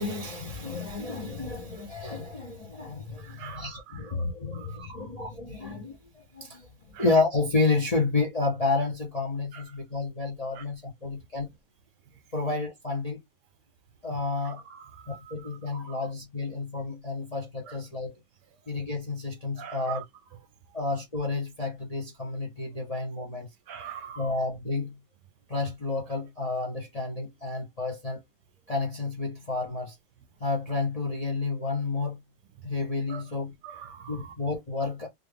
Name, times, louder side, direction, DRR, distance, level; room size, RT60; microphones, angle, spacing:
voice 1, 0.0-6.7 7.0-11.5 12.3-13.2 14.0-14.6 15.1-18.1 18.7-20.0 20.7-23.5 24.2-25.0 25.5-28.2 28.7-29.9 30.4-32.2 32.6-33.5 34.1-35.1, left 3 dB, 30° left, 0.7 m, -30 dB
voice 2, 3.2-4.0 4.5-5.1 6.9-7.0 9.5-9.6 10.6-10.7 14.4-15.3 15.7-16.1 19.6-20.0 23.7-24.3 33.1-33.2 33.6-34.3, right 7 dB, 70° right, 1.2 m, -43 dB
3.6 x 2.5 x 3.4 m
omnidirectional pair, 2.0 m